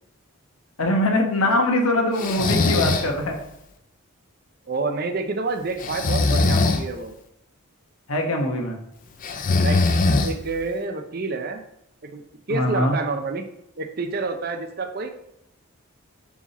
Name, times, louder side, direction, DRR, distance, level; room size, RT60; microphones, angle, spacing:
voice 1, 0.8-3.4 8.1-8.8 12.5-13.0, left 1 dB, 75° left, 2 dB, 1.2 m, -22 dB
Breathing, 2.2-3.1 5.8-6.8 9.2-10.6, left 3 dB, 35° left, 0.5 m, -21 dB
voice 2, 4.7-7.1 9.6-9.8 10.2-11.6 12.0-12.2 12.5-13.4 13.8-15.1, right 3 dB, 45° right, 6 dB, 0.6 m, -28 dB
5.7 x 4.8 x 4.1 m, 0.81 s
head